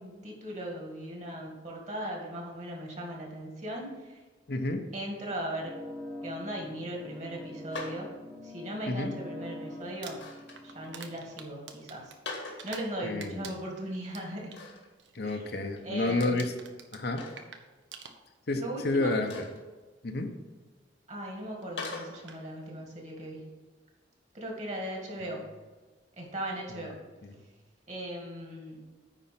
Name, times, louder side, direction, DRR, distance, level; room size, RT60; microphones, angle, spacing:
voice 1, 0.0-4.2 4.9-5.7 6.2-8.1 8.4-10.2 10.6-12.1 12.6-14.6 15.2-15.4 15.8-16.4 18.5-19.2 21.1-23.5 24.3-25.5 26.2-27.0 27.9-28.8, right 1 dB, 40° right, 0 dB, 1.9 m, -38 dB
voice 2, 4.5-4.8 8.9-9.1 13.0-13.5 15.1-16.5 16.9-17.2 18.5-19.3 20.0-20.3 26.7-26.9 27.2-27.4, left 2 dB, 60° left, 5 dB, 0.8 m, -30 dB
sound 1, 5.6-11.4, left 1 dB, 5° right, 1.1 m, -44 dB
sound 2, 7.7-8.0 10.0-10.6 12.1-12.7 14.5-14.9 15.3-15.4 15.8-15.9 17.1-17.4 19.2-19.6 21.8-22.1, left 3 dB, 80° left, 1.8 m, -40 dB
Crumpling crinkling, 9.9-12.9 13.2-14.6 15.0-15.3 15.6-15.9 16.2-18.6 19.5-19.6 21.6-21.7 22.1-22.4, right 6 dB, 80° right, 0.9 m, -47 dB
9.9 x 4.4 x 5.9 m, 1.3 s
head